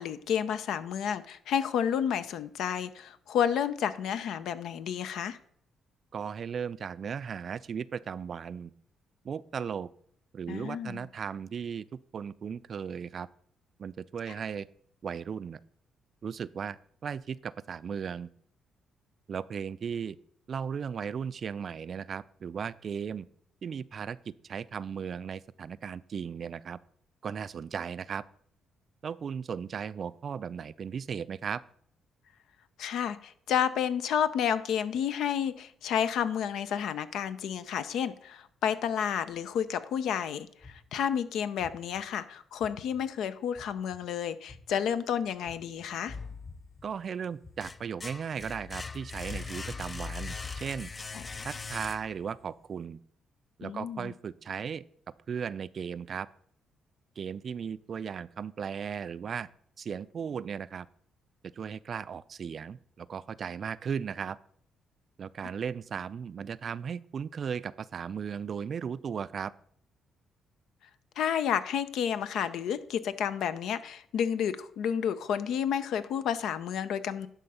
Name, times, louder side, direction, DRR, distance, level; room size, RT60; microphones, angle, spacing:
voice 1, 0.0-5.4 10.5-11.1 32.8-46.2 51.1-51.2 53.6-54.1 71.2-77.3, left 8 dB, 80° left, 13 dB, 0.5 m, -31 dB
voice 2, 6.1-8.7 9.2-9.9 10.3-13.3 13.8-14.7 15.0-15.6 16.2-18.3 19.3-20.2 20.5-23.3 23.6-24.2 24.4-26.8 27.2-28.2 29.0-31.6 46.8-50.9 51.4-53.0 53.6-54.8 55.3-56.3 57.2-59.5 59.8-60.9 61.5-64.4 65.2-69.5, right 7 dB, 50° right, 18 dB, 0.3 m, -36 dB
sound 1, 40.6-41.0 41.6-42.0 42.6-43.0 43.5-44.0 44.5-44.9 45.4-45.9 46.4-46.8 47.4-47.8 48.4-48.8 49.3-49.7 50.3-50.4, left 3 dB, 50° left, 3.0 m, -51 dB
sound 2, 46.1-46.9 47.3-52.4, left 4 dB, 30° left, 0.4 m, -40 dB
11.0 x 3.7 x 5.5 m, 0.65 s
cardioid pair, 90°, 0 cm